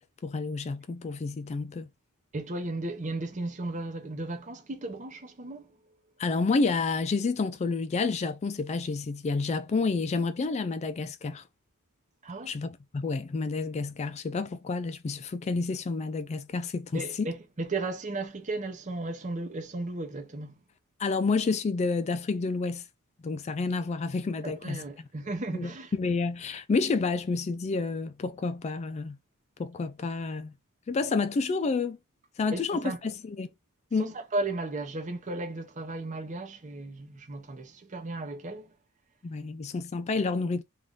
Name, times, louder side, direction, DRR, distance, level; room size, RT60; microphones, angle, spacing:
voice 1, 0.2-1.9 6.2-11.4 12.5-17.3 21.0-22.8 23.2-24.8 25.5-29.2 29.6-30.5 30.9-32.0 32.4-33.5 33.9-34.1 39.2-40.6, left 4 dB, 30° left, 0.3 m, -29 dB
voice 2, 2.3-5.8 12.2-12.5 16.9-20.6 24.4-25.9 32.5-33.0 34.0-38.7, right 2 dB, 35° right, 0.8 m, -35 dB
3.5 x 2.4 x 3.8 m
head